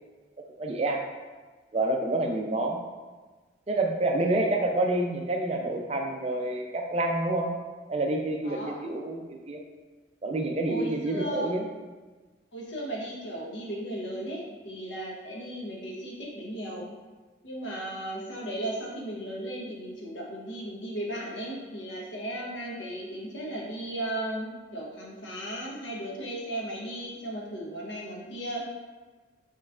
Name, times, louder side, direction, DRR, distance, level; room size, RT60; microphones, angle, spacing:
voice 1, 0.6-1.0 1.7-2.8 3.7-7.5 7.9-9.6 10.2-11.6, right 2 dB, 35° right, 2 dB, 0.4 m, -28 dB
voice 2, 8.4-8.8 10.7-11.5 12.5-16.9 17.4-28.7, right 1 dB, 85° left, -3 dB, 0.9 m, -36 dB
5.9 x 3.1 x 2.4 m, 1.3 s
head